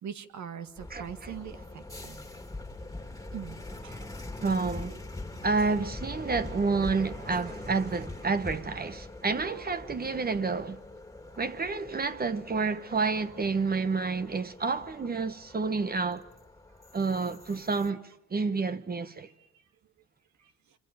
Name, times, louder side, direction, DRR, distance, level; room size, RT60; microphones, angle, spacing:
voice 1, 0.0-2.2 3.3-4.1 4.3-4.4 19.4-19.5, right 8 dB, 70° right, 2.0 m, -42 dB
sound 1, 0.8-17.9, left 2 dB, 10° left, 2.3 m, -43 dB
voice 2, 0.9-1.4 4.4-5.0 5.4-10.8 11.4-16.2 16.9-18.0 18.3-19.3, right 4 dB, 30° right, 1.1 m, -29 dB
27.0 x 25.5 x 6.8 m
cardioid pair, 90°, 30 cm